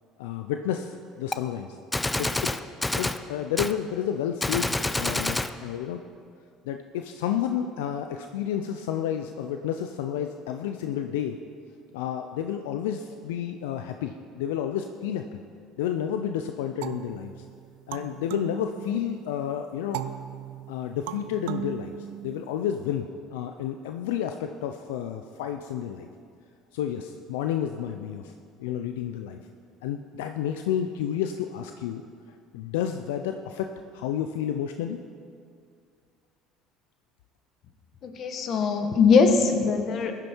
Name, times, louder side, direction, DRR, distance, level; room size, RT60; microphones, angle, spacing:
voice 1, 0.2-1.8 2.2-2.3 3.0-6.0 6.6-11.4 11.9-15.4 15.8-17.3 17.9-20.0 20.7-22.0 22.2-26.1 26.7-28.3 28.6-29.4 29.8-32.0 32.5-33.7 33.9-35.0, left 9 dB, 90° left, 6 dB, 0.5 m, -30 dB
Gunshot gunfire, 1.3-1.4 1.9-3.2 3.6-3.8 4.4-5.5, left 2 dB, 10° left, 0.5 m, -27 dB
sound 1, 16.8-19.3 19.9-22.7, right 11 dB, 80° right, 0.5 m, -38 dB
voice 2, 38.0-40.1, left 5 dB, 55° left, 5 dB, 1.5 m, -21 dB
16.0 x 10.5 x 4.5 m, 2.3 s
supercardioid pair, 85°, 0 cm